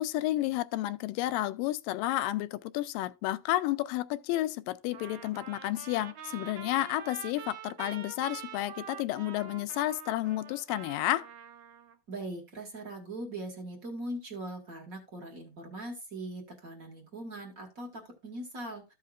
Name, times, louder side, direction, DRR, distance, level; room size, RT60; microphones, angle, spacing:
voice 1, 0.0-11.3, left 15 dB, 80° left, 2.2 m, -31 dB
Trumpet, 4.9-12.0, right 8 dB, 70° right, 1.9 m, -46 dB
voice 2, 12.1-18.9, right 1 dB, 45° right, 1.1 m, -41 dB
14.0 x 5.6 x 2.3 m
omnidirectional pair, 4.0 m